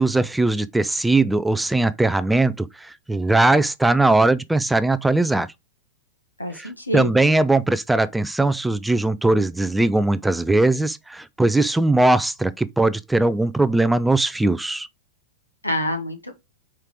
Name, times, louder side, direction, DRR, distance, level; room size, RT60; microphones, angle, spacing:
voice 1, 0.0-5.5 6.5-14.9, right 2 dB, 5° right, 0.4 m, -20 dB
voice 2, 6.4-7.3 15.6-16.4, left 1 dB, 85° left, 1.6 m, -27 dB
4.9 x 4.4 x 4.9 m
figure-of-eight pair, 95°, 0 cm